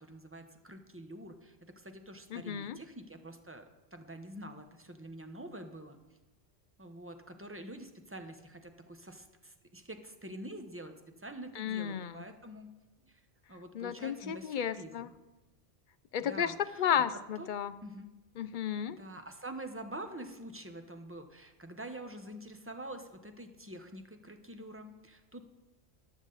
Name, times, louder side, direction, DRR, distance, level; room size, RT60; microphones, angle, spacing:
voice 1, 0.0-3.6 3.9-6.0 6.8-12.7 13.1-13.2 13.5-15.1 16.2-17.0 17.4-17.5 17.8-18.1 18.9-25.5, right 1 dB, 10° right, 6 dB, 1.0 m, -46 dB
voice 2, 2.3-2.8 11.6-12.2 13.7-15.1 16.1-17.7 18.4-19.0, left 8 dB, 55° left, 14 dB, 0.6 m, -33 dB
14.5 x 11.5 x 4.0 m, 1.1 s
omnidirectional pair, 1.1 m